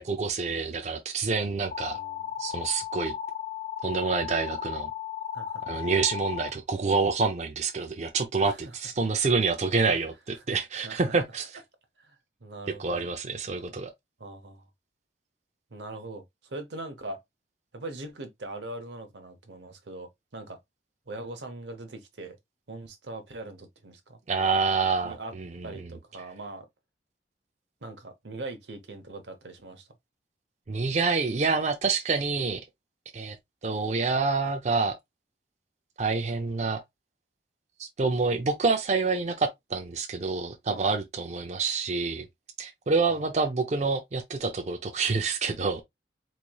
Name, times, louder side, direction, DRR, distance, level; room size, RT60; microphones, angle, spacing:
voice 1, 0.0-2.0 2.4-3.1 3.8-4.9 5.7-11.6 12.8-13.9 24.3-25.7 30.7-32.6 33.1-33.4 33.6-34.9 36.0-36.8 37.8-42.3 42.6-45.8, right 4 dB, 40° right, 0.5 m, -27 dB
sound 1, 1.7-6.5, left 9 dB, 50° left, 0.4 m, -35 dB
voice 2, 1.8-2.3 5.3-5.6 8.4-8.6 9.8-10.0 10.8-11.1 12.0-13.1 14.2-14.7 15.7-17.2 17.7-20.6 21.1-22.4 22.7-24.2 25.0-25.3 25.6-26.7 27.8-29.9 40.7-41.0 43.1-43.3, right 2 dB, 80° right, 0.9 m, -41 dB
4.1 x 3.1 x 2.3 m
head